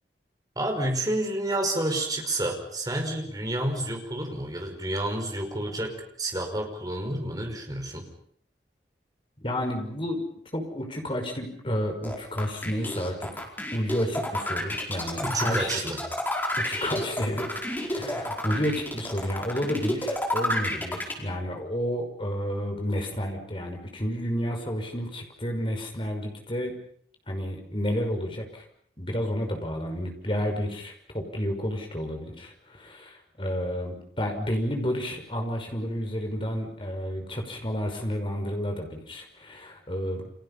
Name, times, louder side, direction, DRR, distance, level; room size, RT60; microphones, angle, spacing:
voice 1, 0.6-8.1 15.2-16.0, right 1 dB, 20° right, 3 dB, 5.3 m, -29 dB
voice 2, 9.4-10.3 10.5-13.3 13.7-15.8 16.6-17.5 17.9-26.7 27.3-28.6 29.0-40.3, equal, 30° left, 3 dB, 5.7 m, -31 dB
sound 1, 12.0-21.1, left 1 dB, 10° left, 4.8 m, -30 dB
30.0 x 27.0 x 5.7 m, 0.63 s
head